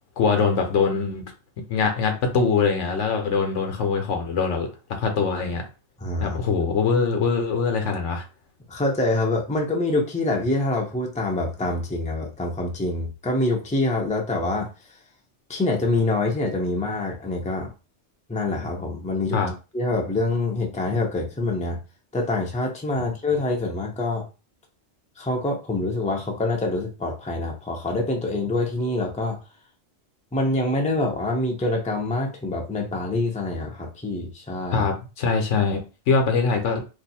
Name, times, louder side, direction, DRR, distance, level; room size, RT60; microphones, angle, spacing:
voice 1, 0.2-1.3 1.7-5.6 6.2-8.2 19.3-19.5 34.7-36.8, left 5 dB, 80° left, 4 dB, 1.1 m, -23 dB
voice 2, 6.0-6.4 8.7-14.7 15.5-17.7 18.3-19.4 19.7-21.8 22.1-24.2 25.2-29.4 30.3-34.9, left 2 dB, 10° left, 1 dB, 0.6 m, -25 dB
2.7 x 2.5 x 4.1 m, 0.31 s
omnidirectional pair, 1.2 m